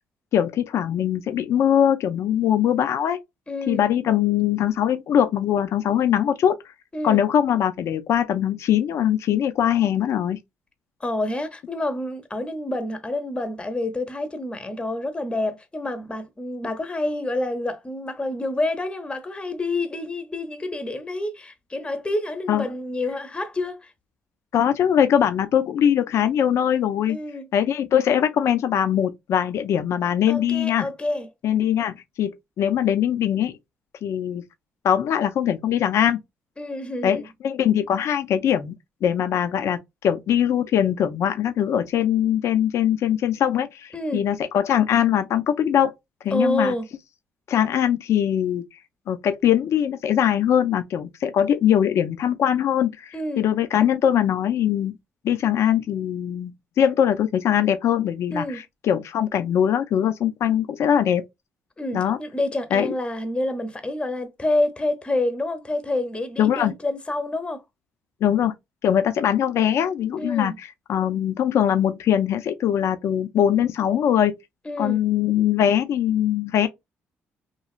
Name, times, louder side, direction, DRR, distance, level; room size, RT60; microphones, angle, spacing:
voice 1, 0.3-3.2 3.7-6.6 7.0-10.4 22.5-22.6 24.5-27.2 27.5-30.9 31.4-32.3 32.6-33.6 34.0-34.4 34.8-36.2 37.0-38.7 39.0-45.9 46.2-46.7 47.5-48.6 49.1-54.9 55.2-56.5 56.8-61.2 61.9-62.2 62.7-62.9 66.4-66.7 68.2-68.5 68.8-74.3 74.8-76.7, left 9 dB, 65° left, 0.5 m, -21 dB
voice 2, 3.5-3.8 6.9-7.2 11.0-23.9 27.1-27.5 30.3-31.3 36.6-37.3 43.9-44.2 46.3-46.9 53.1-53.4 58.3-58.6 61.8-67.6 70.2-70.6 74.6-75.0, left 1 dB, 20° left, 0.8 m, -28 dB
3.1 x 2.3 x 2.4 m
cardioid pair, 80°, 5 cm